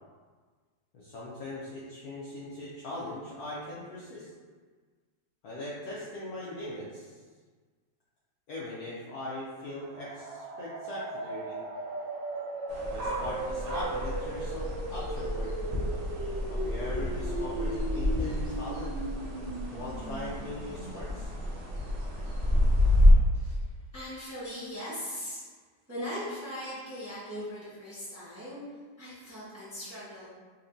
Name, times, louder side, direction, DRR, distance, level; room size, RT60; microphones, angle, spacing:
voice 1, 0.9-4.3 5.4-7.2 8.5-11.6 12.8-15.5 16.5-18.9 19.7-21.3, left 1 dB, 70° left, -7 dB, 0.9 m, -40 dB
sound 1, 9.7-21.3, right 2 dB, 80° right, 1.3 m, -38 dB
sound 2, 12.7-23.1, left 1 dB, 60° right, 0.9 m, -29 dB
voice 2, 23.3-25.4 25.9-30.3, equal, 10° right, -12 dB, 0.8 m, -40 dB
4.2 x 2.8 x 2.6 m, 1.5 s
omnidirectional pair, 2.1 m